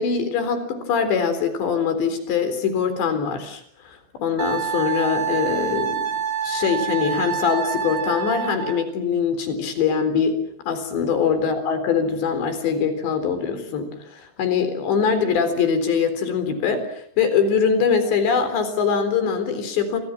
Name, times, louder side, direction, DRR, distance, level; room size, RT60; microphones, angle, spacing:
voice 1, 0.0-6.1 6.4-10.4 10.6-20.0, left 6 dB, 85° left, 10 dB, 6.1 m, -23 dB
Wind instrument woodwind instrument, 4.4-8.8, right 7 dB, 55° right, 1.8 m, -27 dB
28.5 x 26.5 x 7.4 m, 0.67 s
omnidirectional pair, 4.9 m